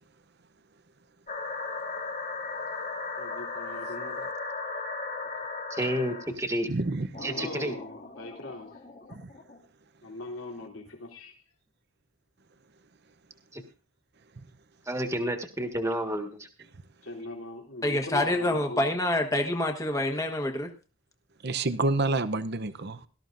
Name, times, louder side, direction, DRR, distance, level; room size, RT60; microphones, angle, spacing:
sound 1, 1.3-6.3 7.1-9.6, left 3 dB, 40° left, 2.4 m, -37 dB
voice 1, 3.2-4.3 7.2-8.8 10.0-11.4 17.0-19.0, left 2 dB, 75° left, 3.4 m, -40 dB
voice 2, 5.7-6.7 7.2-7.8 13.5-13.6 14.9-16.5, right 1 dB, 15° right, 1.6 m, -30 dB
voice 3, 6.7-7.2 9.1-9.3 21.4-23.0, right 2 dB, 50° right, 0.8 m, -28 dB
voice 4, 17.8-20.7, left 1 dB, 15° left, 1.3 m, -27 dB
18.5 x 13.0 x 2.6 m
head